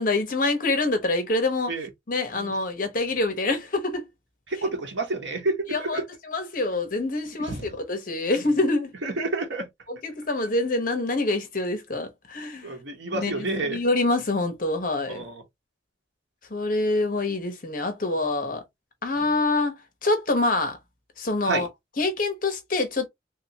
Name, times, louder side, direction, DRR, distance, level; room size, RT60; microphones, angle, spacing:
voice 1, 0.0-1.7 2.1-4.1 5.7-8.9 9.9-12.7 13.1-15.2 16.5-18.6 19.0-20.8 21.2-21.7 22.0-23.1, left 2 dB, 45° left, 1.0 m, -26 dB
voice 2, 4.5-6.0 7.4-7.7 9.0-9.7 12.6-13.8 15.1-15.4 21.4-21.7, right 2 dB, 80° right, 1.1 m, -29 dB
3.5 x 2.8 x 2.9 m
head